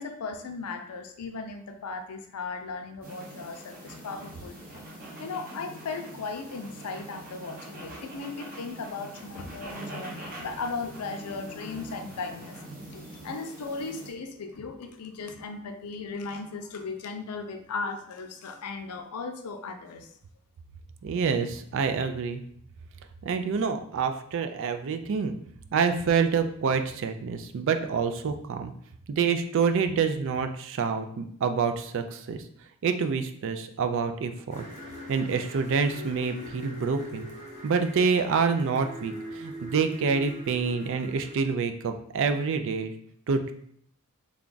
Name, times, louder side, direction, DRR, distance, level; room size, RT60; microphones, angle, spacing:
voice 1, 0.0-4.8 5.2-12.6 12.9-20.1, left 4 dB, 90° left, 7 dB, 0.5 m, -37 dB
sound 1, 3.0-14.1, right 1 dB, 40° right, 1.0 m, -43 dB
voice 2, 21.0-22.4 23.2-25.3 25.7-28.7 29.1-32.4 32.8-34.6 35.1-37.3 37.6-42.9 43.3-43.5, right 5 dB, 55° right, 8 dB, 0.3 m, -27 dB
sound 2, 34.5-41.3, equal, 30° left, 0.8 m, -42 dB
3.3 x 2.3 x 3.8 m, 0.65 s
head